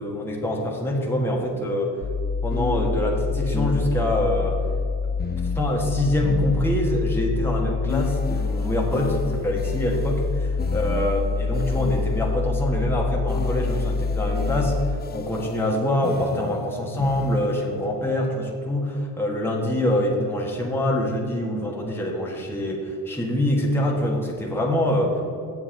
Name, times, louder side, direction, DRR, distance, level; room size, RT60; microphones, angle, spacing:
voice 1, 0.0-1.9 2.4-4.6 5.3-14.8 15.1-25.2, left 1 dB, 5° left, -2 dB, 1.6 m, -25 dB
sound 1, 2.0-14.9, left 4 dB, 60° left, 2.1 m, -26 dB
sound 2, 2.5-4.3 5.2-7.1 7.9-12.4 13.3-17.8, left 5 dB, 20° left, 0.4 m, -35 dB
8.1 x 6.7 x 5.2 m, 2.4 s
cardioid pair, 75°, 48 cm